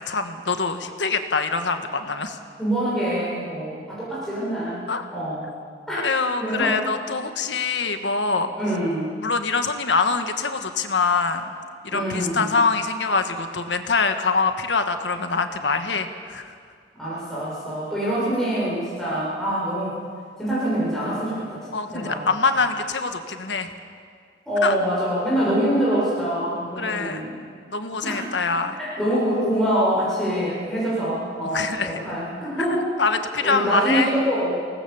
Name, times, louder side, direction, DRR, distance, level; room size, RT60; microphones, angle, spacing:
voice 1, 0.1-2.4 4.9-5.0 6.0-8.5 9.2-11.4 11.8-16.4 21.7-23.7 24.6-24.7 26.8-27.2 27.7-28.8 31.5-31.9 33.0-34.1, left 4 dB, 80° left, 7 dB, 1.6 m, -24 dB
voice 2, 2.6-4.8 5.1-5.5 5.9-6.1 6.4-6.8 8.6-9.1 11.9-12.5 17.0-20.0 20.4-21.7 21.9-22.2 24.5-27.3 28.0-28.2 28.6-32.9 33.4-34.5, equal, ahead, -9 dB, 6.9 m, -25 dB
25.0 x 19.0 x 7.2 m, 2.1 s
head